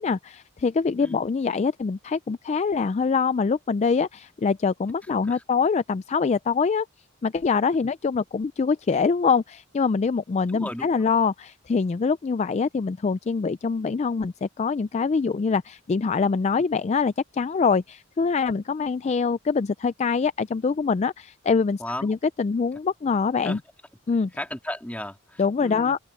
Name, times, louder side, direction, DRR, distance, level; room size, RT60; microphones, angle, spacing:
voice 1, 0.0-6.9 7.2-23.6 24.1-24.3 25.4-26.0, left 5 dB, 30° left, 0.3 m, -24 dB
voice 2, 10.5-10.9 21.8-22.1 23.4-23.6 24.4-26.0, left 1 dB, 5° left, 2.3 m, -34 dB
open air
head